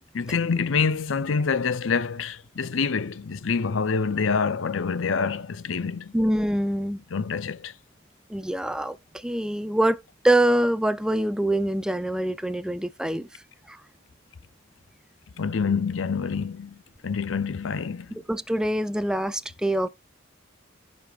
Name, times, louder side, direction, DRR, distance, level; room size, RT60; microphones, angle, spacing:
voice 1, 0.1-6.1 7.1-7.7 15.4-16.8 17.0-18.2, left 5 dB, 75° left, 0.6 m, -26 dB
voice 2, 6.1-7.0 8.3-10.0 10.2-13.4 13.7-13.8 18.3-19.9, right 1 dB, 5° right, 0.4 m, -24 dB
15.0 x 5.2 x 2.4 m
head